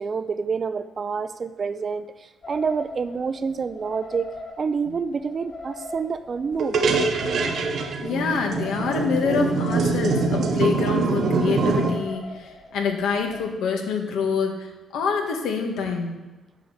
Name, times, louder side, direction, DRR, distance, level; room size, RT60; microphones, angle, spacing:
voice 1, 0.0-6.8, right 5 dB, 40° right, 12 dB, 0.6 m, -28 dB
sound 1, 2.4-13.4, left 2 dB, 45° left, 3.2 m, -41 dB
sound 2, 6.6-11.9, right 4 dB, 65° right, 1.4 m, -23 dB
voice 2, 8.0-14.7 14.9-16.1, left 5 dB, 85° left, 3 dB, 1.7 m, -26 dB
9.8 x 5.4 x 7.1 m, 1.1 s
cardioid pair, 90°, 0 cm